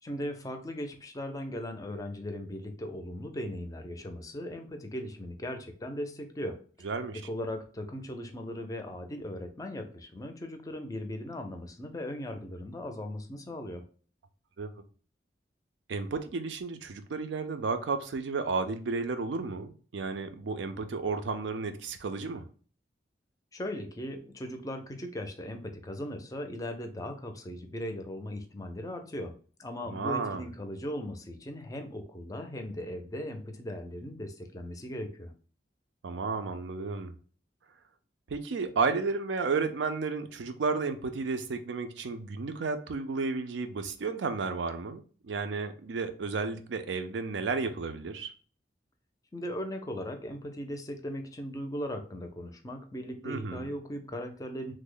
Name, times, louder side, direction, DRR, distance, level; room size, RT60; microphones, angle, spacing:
voice 1, 0.0-6.9 7.1-13.9 23.5-35.3 49.3-54.7, left 1 dB, 20° left, 0.4 m, -38 dB
voice 2, 6.8-7.2 14.6-14.7 15.9-22.5 29.8-30.5 36.0-37.1 38.3-48.3 53.2-53.7, right 4 dB, 90° right, 0.4 m, -32 dB
3.1 x 2.0 x 3.6 m
head